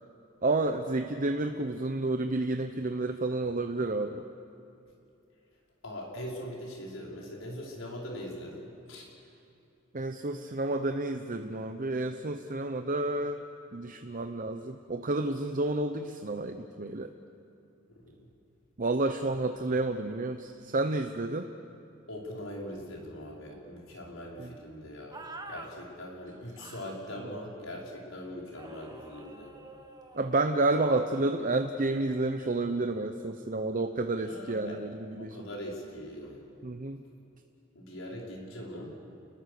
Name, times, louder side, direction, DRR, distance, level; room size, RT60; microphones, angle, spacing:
voice 1, 0.4-4.2 9.9-13.4 13.7-17.1 18.8-21.5 24.4-24.5 30.1-35.4 36.6-37.0, right 2 dB, 40° right, 6 dB, 0.9 m, -30 dB
voice 2, 5.8-9.1 17.9-18.3 22.1-29.5 34.2-34.8 35.1-36.4 37.7-38.9, equal, 90° left, -2 dB, 5.5 m, -41 dB
sound 1, 25.1-25.7 26.6-27.1 28.6-30.9, right 2 dB, 20° right, 1.5 m, -47 dB
30.0 x 21.0 x 6.8 m, 2.7 s
head